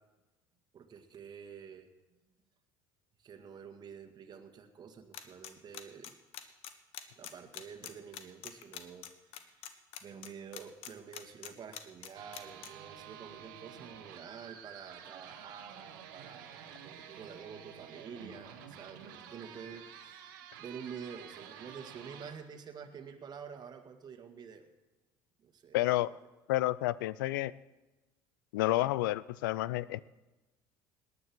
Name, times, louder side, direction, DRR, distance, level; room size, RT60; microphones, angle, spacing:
voice 1, 0.7-1.9 3.2-6.2 7.2-20.3 20.6-24.6 25.4-26.1, right 6 dB, 40° right, 5 dB, 1.9 m, -49 dB
sound 1, 5.1-12.7, left 12 dB, 70° left, 1.2 m, -44 dB
sound 2, 12.1-22.3, right 8 dB, 85° right, 1.3 m, -50 dB
voice 2, 25.7-26.1 26.5-27.5 28.5-30.0, left 17 dB, 85° left, 20 dB, 0.4 m, -30 dB
18.0 x 9.7 x 6.2 m, 1.1 s
hypercardioid pair, 80°, 11 cm